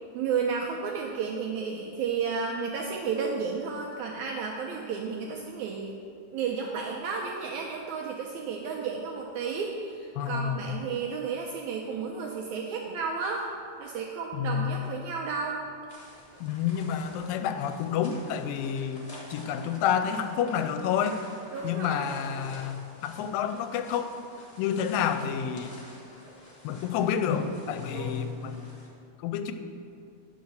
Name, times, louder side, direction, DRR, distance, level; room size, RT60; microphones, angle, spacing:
voice 1, 0.1-5.9 6.3-13.5 13.8-15.6 21.5-22.1 27.9-28.2, right 5 dB, 85° right, -1 dB, 1.7 m, -32 dB
voice 2, 10.2-10.6 14.3-14.8 16.4-21.2 21.6-24.1 24.6-25.7 26.6-28.7 29.2-29.5, left 8 dB, 90° left, 9 dB, 2.3 m, -29 dB
sound 1, 15.9-28.9, left 1 dB, 65° left, 0.6 m, -48 dB
9.5 x 4.7 x 6.6 m, 2.4 s
omnidirectional pair, 3.9 m